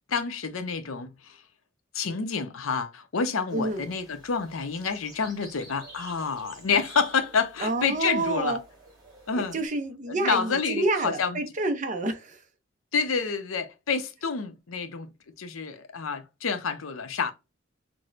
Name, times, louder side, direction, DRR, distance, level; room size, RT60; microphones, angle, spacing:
voice 1, 0.1-1.4 1.9-8.6 9.3-9.6 10.1-11.4 12.9-15.1 15.4-17.3, left 5 dB, 85° left, 0.7 m, -28 dB
sound 1, 3.5-9.7, right 2 dB, 20° right, 2.1 m, -50 dB
voice 2, 3.5-3.9 7.6-8.6 9.3-12.4, right 2 dB, 40° right, 0.5 m, -28 dB
6.0 x 2.1 x 2.4 m
head